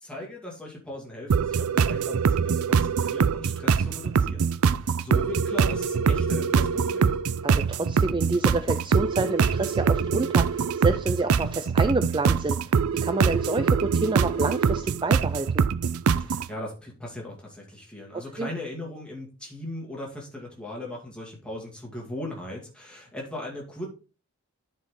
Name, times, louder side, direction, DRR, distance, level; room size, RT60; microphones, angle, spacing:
voice 1, 0.0-4.5 4.8-7.1 16.2-23.9, left 1 dB, 5° left, -3 dB, 2.2 m, -38 dB
sound 1, 1.3-16.5, right 6 dB, 80° right, 0.4 m, -23 dB
voice 2, 7.4-15.7 18.4-18.5, right 3 dB, 20° right, 10 dB, 0.3 m, -28 dB
10.5 x 4.6 x 3.7 m, 0.34 s
head